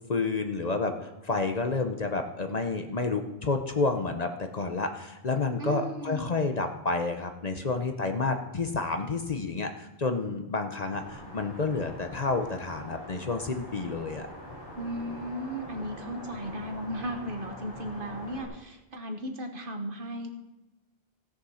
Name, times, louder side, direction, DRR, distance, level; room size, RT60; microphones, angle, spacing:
voice 1, 0.1-14.3, left 3 dB, 40° left, 6 dB, 0.9 m, -30 dB
voice 2, 5.6-6.2 14.8-20.3, right 1 dB, 55° right, 4 dB, 1.5 m, -36 dB
sound 1, 10.9-18.4, equal, 25° left, 4.3 m, -44 dB
16.5 x 6.4 x 5.7 m, 1.0 s
omnidirectional pair, 1.1 m